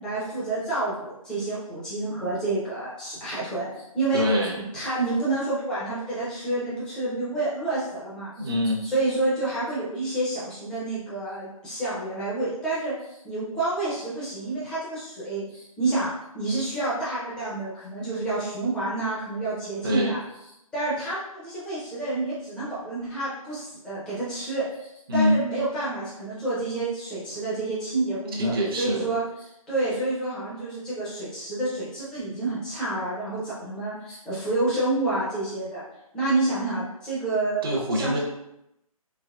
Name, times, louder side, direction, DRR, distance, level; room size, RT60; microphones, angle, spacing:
voice 1, 0.0-4.2 4.5-8.3 8.8-20.2 20.7-35.8 36.1-37.6 37.9-38.2, right 2 dB, 5° left, -9 dB, 0.5 m, -29 dB
voice 2, 4.1-4.6 8.4-8.8 19.8-20.1 25.1-25.4 28.3-29.1 37.6-38.2, equal, 40° right, 0 dB, 0.6 m, -24 dB
3.3 x 3.0 x 2.3 m, 0.84 s
figure-of-eight pair, 150°, 19 cm